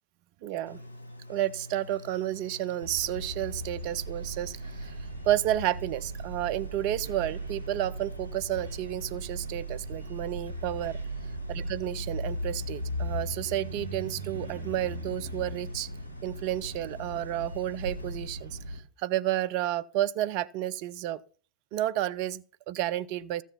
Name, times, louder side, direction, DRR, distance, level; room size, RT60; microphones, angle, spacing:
voice 1, 0.4-0.8 1.3-4.9 5.2-11.0 11.5-15.9 16.2-21.2 21.7-23.4, right 13 dB, 45° right, 0.5 m, -31 dB
sound 1, 0.7-18.2, left 1 dB, 90° right, 1.9 m, -47 dB
sound 2, 2.8-18.8, right 1 dB, 65° right, 2.1 m, -38 dB
14.5 x 7.3 x 5.4 m
figure-of-eight pair, 90°, 0 cm